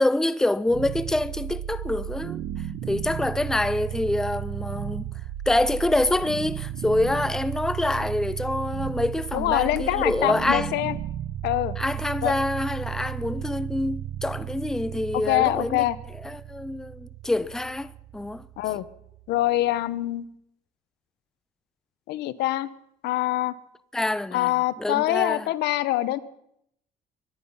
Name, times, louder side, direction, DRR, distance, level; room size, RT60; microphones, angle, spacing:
voice 1, 0.0-2.4 2.9-5.1 5.5-10.7 11.8-15.8 16.2-18.4 23.9-24.5 24.8-25.5, left 2 dB, 5° left, 0.5 m, -26 dB
sound 1, 0.7-19.7, right 11 dB, 70° right, 1.2 m, -34 dB
voice 2, 9.3-11.0 11.4-11.8 12.2-12.3 15.1-16.0 18.6-18.9 19.3-20.3 22.1-22.7 23.0-23.5 24.3-26.2, left 15 dB, 80° left, 0.9 m, -24 dB
23.5 x 10.5 x 5.6 m
cardioid pair, 110°, 17 cm